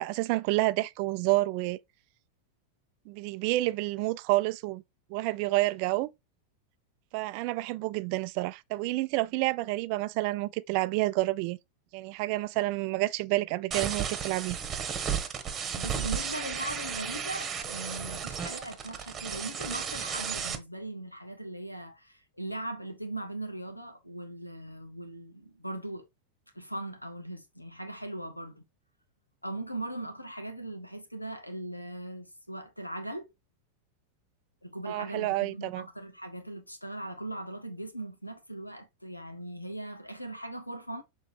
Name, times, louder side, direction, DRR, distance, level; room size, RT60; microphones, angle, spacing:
voice 1, 0.0-1.8 3.1-4.8 5.1-6.1 7.1-11.6 11.9-14.6 34.9-35.9, right 20 dB, 45° right, 0.4 m, -29 dB
sound 1, 13.7-20.6, right 7 dB, 25° right, 1.2 m, -34 dB
voice 2, 15.7-26.1 26.5-28.6 29.4-33.3 34.6-41.0, right 1 dB, 85° left, 1.1 m, -39 dB
6.8 x 3.2 x 4.4 m
figure-of-eight pair, 90°, 0 cm